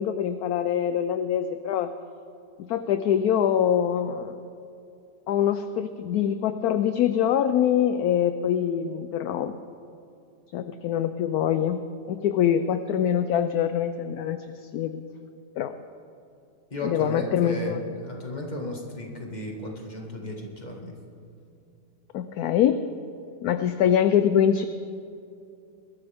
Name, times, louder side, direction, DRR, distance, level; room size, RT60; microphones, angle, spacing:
voice 1, 0.0-1.9 2.6-4.4 5.3-9.5 10.5-11.8 12.1-14.4 14.7-15.0 15.6-15.7 16.8-17.8 22.1-22.8 23.4-24.7, left 9 dB, 70° left, 10 dB, 1.0 m, -24 dB
voice 2, 16.7-21.0, left 1 dB, 25° left, 0 dB, 1.9 m, -34 dB
21.5 x 13.0 x 3.6 m, 2.6 s
omnidirectional pair, 1.8 m